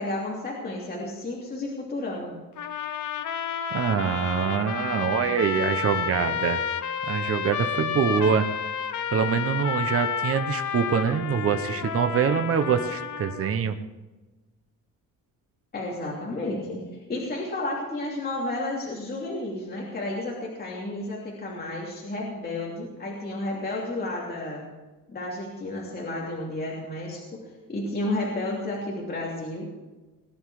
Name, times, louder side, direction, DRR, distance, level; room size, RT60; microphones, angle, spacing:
voice 1, 0.0-2.4 15.7-24.6 25.1-27.2 27.7-29.7, left 2 dB, 25° left, -4 dB, 2.9 m, -32 dB
sound 1, 2.6-13.6, left 7 dB, 60° left, 1.0 m, -31 dB
voice 2, 3.7-6.6 7.1-8.5 9.1-13.8, right 7 dB, 40° right, 7 dB, 0.9 m, -24 dB
19.5 x 10.5 x 4.8 m, 1.2 s
cardioid pair, 165°, 34 cm